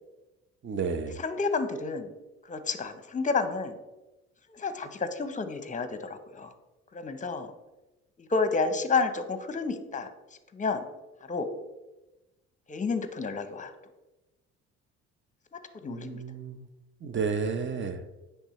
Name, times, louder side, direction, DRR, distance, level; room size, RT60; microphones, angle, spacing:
voice 1, 0.6-1.2 15.9-16.7 17.0-18.0, right 5 dB, 40° right, 9 dB, 0.8 m, -32 dB
voice 2, 1.2-2.1 2.5-3.8 4.5-6.5 6.9-7.5 8.2-10.1 10.5-10.8 11.3-11.5 12.7-13.7 15.8-16.2, left 4 dB, 25° left, 9 dB, 0.8 m, -30 dB
9.9 x 3.4 x 3.1 m, 1.0 s
supercardioid pair, 70°, 30 cm